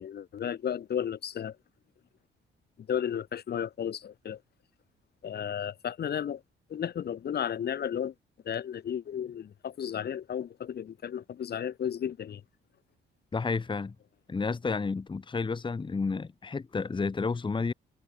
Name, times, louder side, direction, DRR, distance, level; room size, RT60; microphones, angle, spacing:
voice 1, 0.0-1.6 2.9-4.4 5.2-6.4 6.7-8.1 8.4-12.4, left 9 dB, 55° left, 1.5 m, -33 dB
voice 2, 13.3-13.9 14.3-17.7, left 4 dB, 25° left, 1.2 m, -31 dB
cardioid pair, 90°, 20 cm